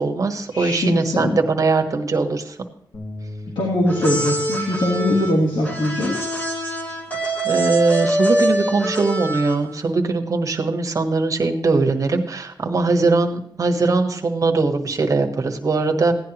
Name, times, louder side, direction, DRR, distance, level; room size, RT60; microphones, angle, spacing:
voice 1, 0.0-2.6 7.4-16.1, right 3 dB, 45° right, 3 dB, 1.4 m, -21 dB
voice 2, 0.5-1.4 3.5-6.2, left 1 dB, 90° left, -3 dB, 2.8 m, -21 dB
sound 1, 2.9-9.2, left 2 dB, 50° left, 2.4 m, -42 dB
sound 2, 3.9-9.8, right 1 dB, 20° left, 2.3 m, -24 dB
16.5 x 10.5 x 3.0 m, 0.69 s
wide cardioid pair, 165°, 8 cm